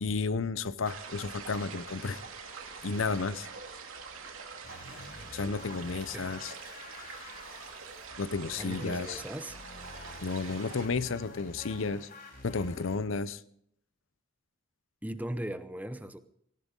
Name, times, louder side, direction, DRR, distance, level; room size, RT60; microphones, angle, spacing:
voice 1, 0.0-2.2 2.8-3.5 5.3-6.5 8.2-9.2 10.2-12.1 12.4-13.4, left 4 dB, 70° left, 0.7 m, -32 dB
sound 1, 0.9-10.9, right 5 dB, 80° right, 2.7 m, -45 dB
sound 2, 4.6-13.0, left 2 dB, 50° left, 4.7 m, -48 dB
voice 2, 8.6-9.6 10.1-10.2 11.7-11.8 15.0-16.2, right 1 dB, 10° right, 0.7 m, -38 dB
18.5 x 18.0 x 3.8 m
head